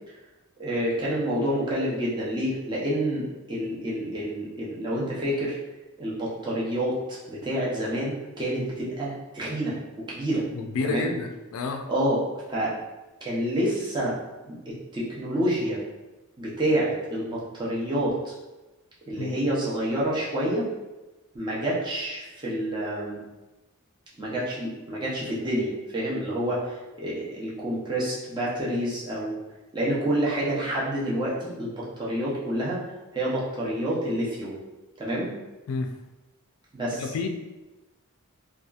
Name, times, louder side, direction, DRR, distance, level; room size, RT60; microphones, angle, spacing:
voice 1, 0.6-5.6 6.0-9.7 10.1-10.4 10.8-11.1 11.9-12.2 12.5-12.7 13.2-14.2 14.4-14.5 14.9-15.8 16.4-18.3 19.1-20.7 21.3-23.2 24.2-29.4 29.7-32.8 33.1-34.6 35.0-35.3 36.7-37.3, right 1 dB, 20° right, -7 dB, 0.6 m, -28 dB
voice 2, 10.5-11.9 19.2-19.4 35.7-35.9 37.0-37.3, left 4 dB, 70° left, 4 dB, 0.3 m, -30 dB
2.8 x 2.3 x 2.3 m, 1.1 s
head